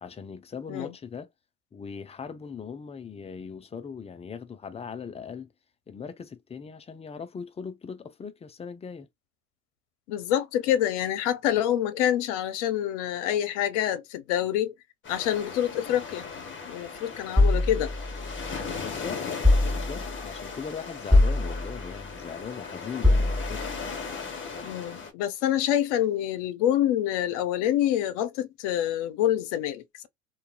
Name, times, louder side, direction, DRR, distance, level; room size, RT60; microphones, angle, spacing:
voice 1, 0.0-1.3 1.7-5.5 5.9-9.1 18.8-19.2 19.7-23.7, left 6 dB, 15° left, 0.5 m, -39 dB
voice 2, 10.1-14.7 15.1-16.3 16.7-17.9 24.6-30.1, left 11 dB, 70° left, 0.7 m, -26 dB
sound 1, 15.0-25.1, left 5 dB, 30° left, 1.3 m, -37 dB
sound 2, 17.4-18.8 19.4-20.3 21.1-22.0 23.0-23.8, left 2 dB, ahead, 1.5 m, -23 dB
2.7 x 2.3 x 2.2 m
hypercardioid pair, 70°, 36 cm